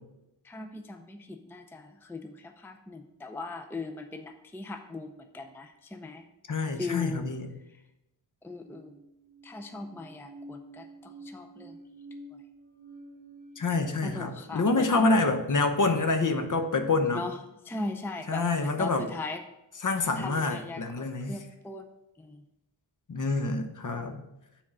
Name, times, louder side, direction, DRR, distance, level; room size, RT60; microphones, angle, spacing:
voice 1, 0.4-6.2 6.8-7.3 8.4-9.0 9.4-11.8 14.0-15.1 17.1-17.4 17.6-19.4 20.2-21.9 22.2-22.4, left 3 dB, 5° left, 5 dB, 0.4 m, -39 dB
voice 2, 6.5-7.5 13.6-17.2 18.3-19.1 19.8-21.4 23.1-24.2, left 3 dB, 45° left, 7 dB, 0.8 m, -27 dB
sound 1, 8.6-15.1, right 1 dB, 20° right, 2.2 m, -49 dB
7.2 x 3.5 x 6.0 m, 0.91 s
wide cardioid pair, 100°, 41 cm